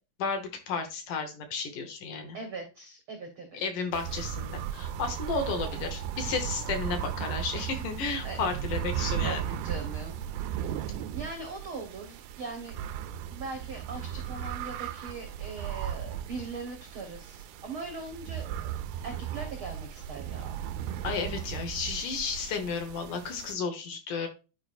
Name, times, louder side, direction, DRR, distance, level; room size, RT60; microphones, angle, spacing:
voice 1, 0.2-2.4 3.5-9.4 21.0-24.3, left 4 dB, 65° left, 5 dB, 2.4 m, -33 dB
voice 2, 2.3-3.6 8.2-8.4 9.2-10.7 11.1-12.7 13.3-18.4 19.0-20.5, right 3 dB, 70° right, 3 dB, 1.2 m, -40 dB
sound 1, 3.9-23.5, right 10 dB, 85° right, 2.5 m, -36 dB
11.5 x 4.8 x 2.4 m, 0.31 s
omnidirectional pair, 4.3 m